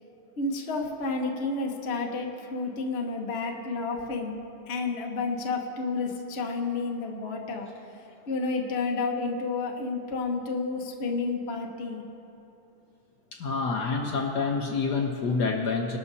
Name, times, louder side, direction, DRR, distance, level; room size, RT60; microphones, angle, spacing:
voice 1, 0.4-4.4 4.7-7.7 8.3-12.0, left 3 dB, 40° left, 1 dB, 1.0 m, -30 dB
voice 2, 13.3-16.0, left 4 dB, 60° left, 2 dB, 1.3 m, -27 dB
22.0 x 12.5 x 2.7 m, 2.9 s
omnidirectional pair, 2.3 m